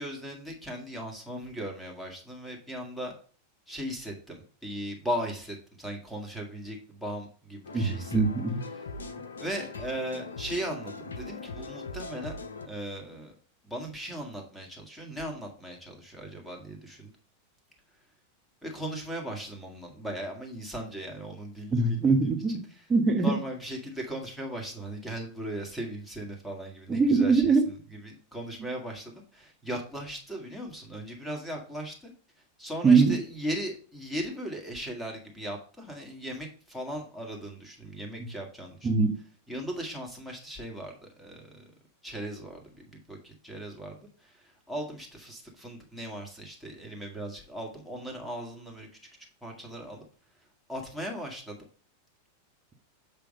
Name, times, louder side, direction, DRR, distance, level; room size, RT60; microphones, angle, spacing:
voice 1, 0.0-3.1 3.7-8.2 9.4-12.4 12.6-13.3 13.6-17.1 18.6-22.1 23.2-27.7 28.0-32.1 32.6-38.9 39.5-41.7 42.0-48.9 49.4-50.0 50.7-51.6, right 1 dB, ahead, 1.9 m, -38 dB
sound 1, 7.6-12.7, left 3 dB, 70° left, 0.6 m, -40 dB
voice 2, 7.7-8.6 21.7-22.6 22.9-23.3 26.9-27.7 32.8-33.2 38.8-39.2, right 4 dB, 20° right, 1.3 m, -22 dB
7.5 x 3.4 x 5.3 m
figure-of-eight pair, 90°, 0 cm